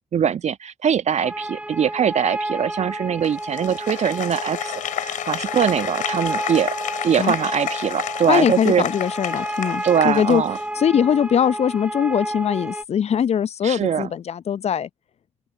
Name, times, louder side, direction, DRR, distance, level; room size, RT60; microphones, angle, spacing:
voice 1, 0.0-6.7 7.0-8.9 9.8-10.6 13.6-14.1, right 8 dB, 50° right, 1.7 m, -22 dB
sound 1, 1.2-12.8, right 1 dB, 10° right, 4.5 m, -31 dB
Applause, 3.2-10.8, left 11 dB, 65° left, 4.4 m, -31 dB
voice 2, 8.3-10.4 10.8-14.9, left 8 dB, 45° left, 0.7 m, -21 dB
open air
figure-of-eight pair, 40°, 15 cm